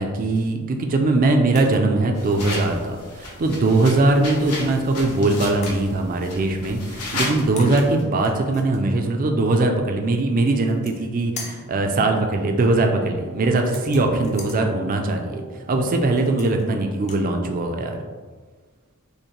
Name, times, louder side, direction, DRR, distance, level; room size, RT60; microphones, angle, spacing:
voice 1, 0.0-15.4 15.7-18.0, right 2 dB, 40° right, 4 dB, 0.4 m, -21 dB
sound 1, 1.5-1.9 2.3-2.7 4.4-5.0 5.6-5.8 7.2-7.3 7.6-8.8 10.5-11.1 11.4-11.7 13.6-14.6 16.2-16.7 17.0-17.3, left 3 dB, 30° left, 0.5 m, -40 dB
sound 2, 2.1-8.0, left 2 dB, 85° left, 1.0 m, -33 dB
sound 3, 11.4-16.8, right 1 dB, 85° right, 1.3 m, -41 dB
5.2 x 2.1 x 2.9 m, 1.4 s
head